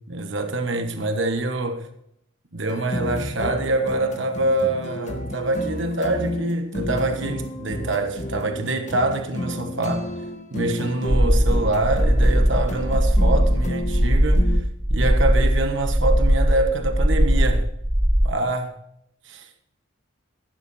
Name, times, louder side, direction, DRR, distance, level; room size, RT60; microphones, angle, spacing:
voice 1, 0.1-1.8 2.5-10.1 10.5-14.6 14.9-17.7 18.2-18.7 19.3-19.5, right 2 dB, 60° right, 1.3 m, -25 dB
sound 1, 2.7-14.6, left 1 dB, 35° left, 1.4 m, -32 dB
sound 2, 11.1-18.3, equal, 5° right, 0.4 m, -19 dB
15.0 x 12.0 x 2.8 m
head